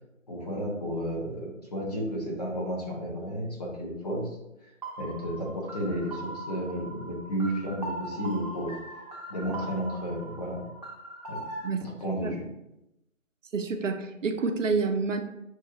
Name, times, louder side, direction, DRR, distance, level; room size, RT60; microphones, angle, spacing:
voice 1, 0.3-4.3 5.0-8.7 9.3-10.6 11.3-11.4 12.0-12.4, equal, 30° left, -2 dB, 0.9 m, -32 dB
sound 1, 4.8-11.7, right 1 dB, 30° right, 0.7 m, -40 dB
voice 2, 13.5-15.2, right 4 dB, 70° right, 6 dB, 0.6 m, -28 dB
6.2 x 2.5 x 2.8 m, 0.91 s
figure-of-eight pair, 155°, 39 cm